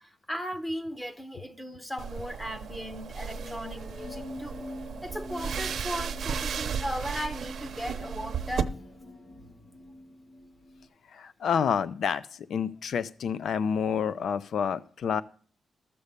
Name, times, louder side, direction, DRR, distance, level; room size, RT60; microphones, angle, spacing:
voice 1, 0.0-4.7 5.0-8.8, equal, 10° left, 0.8 m, -37 dB
sound 1, 2.0-8.6, right 7 dB, 65° right, 0.7 m, -35 dB
sound 2, 3.2-10.9, left 2 dB, 85° left, 3.4 m, -45 dB
voice 2, 11.2-12.2 12.5-15.2, left 7 dB, 70° left, 0.5 m, -28 dB
13.0 x 7.0 x 6.6 m
wide cardioid pair, 150°, 0 cm